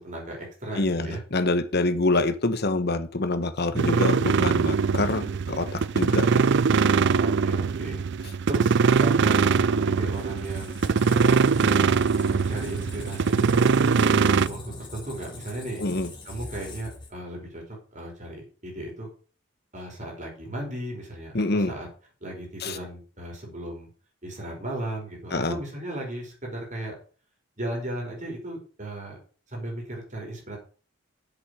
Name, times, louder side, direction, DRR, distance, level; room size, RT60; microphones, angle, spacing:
voice 1, 0.0-1.2 7.2-11.9 12.3-15.8 16.2-19.1 19.7-21.9 22.2-23.9 24.2-26.9 27.6-29.2 29.5-30.6, right 1 dB, 35° right, -1 dB, 5.2 m, -36 dB
voice 2, 0.8-6.4 15.8-16.1 21.3-21.7 22.6-22.8 25.3-25.6, left 2 dB, 50° left, 9 dB, 1.1 m, -26 dB
sound 1, 3.8-14.5, right 5 dB, 55° right, 0.4 m, -22 dB
Squeak, 9.9-17.6, left 2 dB, 20° left, 3.6 m, -42 dB
8.1 x 7.7 x 6.9 m, 0.39 s
head